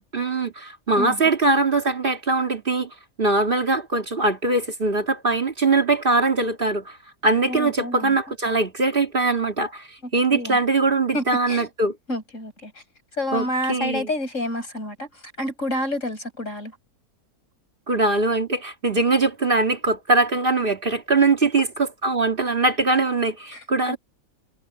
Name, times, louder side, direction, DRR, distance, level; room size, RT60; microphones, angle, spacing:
voice 1, 0.0-2.9 3.2-7.0 7.2-11.9 13.3-14.1 17.9-21.7 22.0-24.0, right 3 dB, 35° right, 2.5 m, -22 dB
voice 2, 7.5-8.2 10.0-10.6 11.1-11.7 12.1-12.7 13.2-15.1 15.4-16.7 23.5-24.0, left 1 dB, 55° left, 7.9 m, -29 dB
omnidirectional pair, 1.6 m